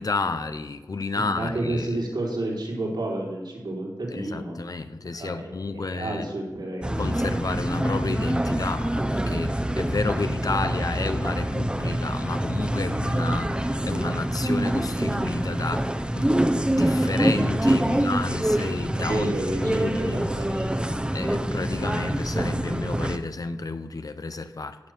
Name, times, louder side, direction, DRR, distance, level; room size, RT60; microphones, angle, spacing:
voice 1, 0.0-1.9 4.1-6.3 7.0-20.3 21.1-24.8, left 3 dB, 55° left, 0.9 m, -31 dB
voice 2, 1.1-4.6 5.0-6.9 17.8-18.1 18.4-18.6 18.9-20.9, right 1 dB, 80° right, 4.2 m, -31 dB
sound 1, 6.8-23.2, right 1 dB, 15° right, 0.9 m, -25 dB
16.5 x 7.6 x 6.8 m
wide cardioid pair, 75°, 7 cm